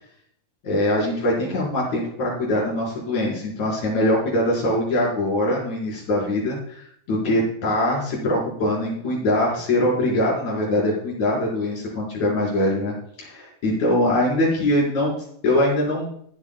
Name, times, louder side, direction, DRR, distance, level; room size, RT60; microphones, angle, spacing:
voice 1, 0.6-15.1 15.4-16.1, left 1 dB, 65° left, -4 dB, 5.9 m, -22 dB
24.5 x 8.4 x 2.2 m, 0.66 s
omnidirectional pair, 3.6 m